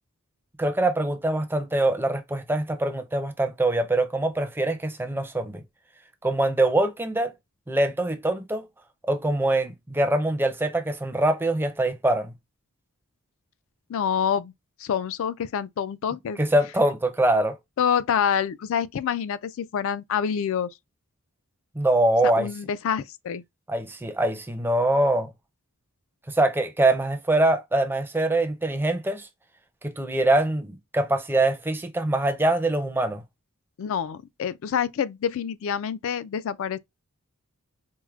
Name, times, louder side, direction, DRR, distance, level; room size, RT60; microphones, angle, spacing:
voice 1, 0.6-5.6 6.2-7.3 7.7-8.7 9.0-12.3 16.4-17.6 21.7-22.5 23.7-25.3 26.3-29.3 29.8-33.2, right 2 dB, 10° right, 0.5 m, -23 dB
voice 2, 13.9-14.5 14.8-16.4 17.8-20.7 22.3-23.4 33.8-36.8, left 8 dB, 60° left, 0.3 m, -27 dB
4.5 x 2.1 x 2.3 m
head